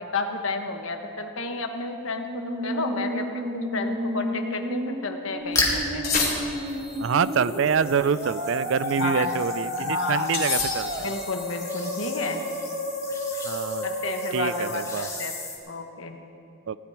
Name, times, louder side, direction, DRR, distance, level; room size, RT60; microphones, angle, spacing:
voice 1, 0.0-3.4 3.7-6.1 8.2-8.3 9.0-9.3 9.8-10.3 11.0-12.4 13.8-15.3 15.7-16.2, left 3 dB, 65° left, 5 dB, 1.2 m, -31 dB
Musical instrument, 2.1-15.1, equal, 35° right, 1.5 m, -32 dB
sound 1, 5.4-5.9 6.6-15.6, left 2 dB, 15° left, 1.6 m, -35 dB
sound 2, 6.0-6.9 10.3-11.3, left 5 dB, 45° left, 2.8 m, -28 dB
voice 2, 7.0-11.1 13.4-13.9 14.3-15.1 16.7-16.8, right 6 dB, 60° right, 16 dB, 0.4 m, -26 dB
16.5 x 6.1 x 9.8 m, 2.5 s
head